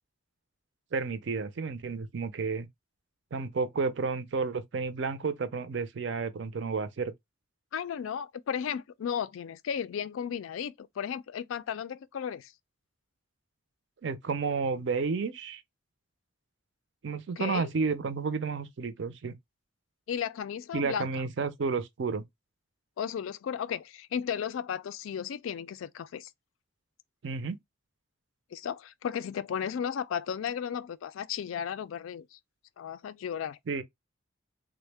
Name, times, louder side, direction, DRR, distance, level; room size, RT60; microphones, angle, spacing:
voice 1, 0.9-2.7 3.3-7.1 14.0-15.6 17.0-19.4 20.7-22.2 27.2-27.6 33.7-33.8, right 4 dB, 65° right, 0.4 m, -31 dB
voice 2, 7.7-12.5 17.4-17.7 20.1-21.1 23.0-26.3 28.5-32.4 32.8-33.6, left 8 dB, 80° left, 0.3 m, -34 dB
3.5 x 2.1 x 3.2 m
head